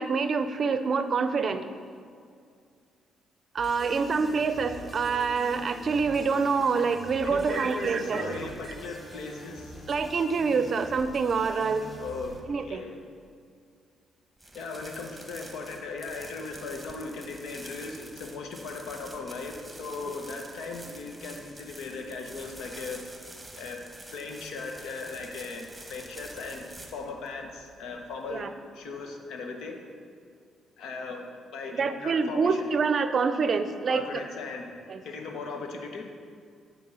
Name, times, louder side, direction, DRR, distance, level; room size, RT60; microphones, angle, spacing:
voice 1, 0.0-1.6 3.5-8.4 8.7-8.8 9.9-11.8 12.5-12.8 28.3-28.5 31.7-34.2 34.9-35.0, right 5 dB, 50° right, 10 dB, 0.5 m, -26 dB
sound 1, 3.6-12.4, left 1 dB, 20° left, 1.3 m, -45 dB
voice 2, 7.2-9.9 12.0-12.4 12.6-13.0 14.5-23.0 23.5-23.8 24.1-29.8 30.8-32.7 33.9-34.7 35.0-36.1, left 4 dB, 80° left, 3 dB, 1.1 m, -38 dB
sound 2, 14.4-28.4, right 1 dB, 10° right, 1.2 m, -48 dB
9.2 x 4.6 x 5.6 m, 2.2 s
cardioid pair, 90°, 0 cm